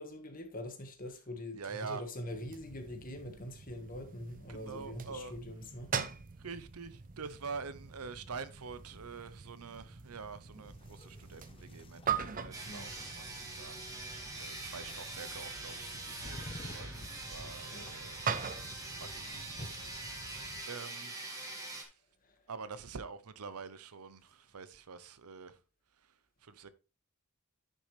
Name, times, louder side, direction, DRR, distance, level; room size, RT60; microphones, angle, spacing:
voice 1, 0.0-5.9 12.6-12.9 17.7-18.0 19.6-19.8, left 1 dB, 40° left, 1.7 m, -44 dB
voice 2, 1.5-2.0 4.5-5.3 6.4-13.8 14.4-18.2 18.9-19.6 20.1-20.4 20.7-21.1 22.5-25.6 26.4-26.7, right 5 dB, 80° right, 0.8 m, -46 dB
sound 1, 2.3-20.6, right 6 dB, 40° right, 0.6 m, -43 dB
sound 2, 10.4-19.7, left 2 dB, 25° left, 0.6 m, -53 dB
sound 3, 12.5-21.8, right 2 dB, 15° right, 2.1 m, -44 dB
9.9 x 6.4 x 3.3 m
head